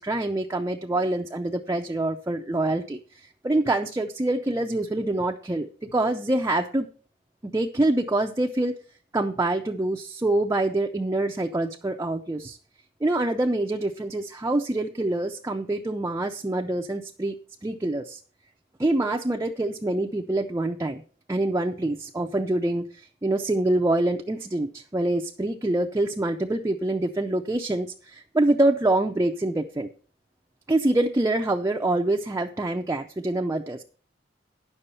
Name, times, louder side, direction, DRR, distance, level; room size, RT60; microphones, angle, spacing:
voice 1, 0.0-6.9 7.4-8.8 9.1-12.6 13.0-17.4 17.6-18.2 18.8-21.0 21.3-29.9 30.7-33.8, right 2 dB, 15° right, 3 dB, 0.5 m, -25 dB
9.7 x 6.8 x 5.5 m, 0.40 s
head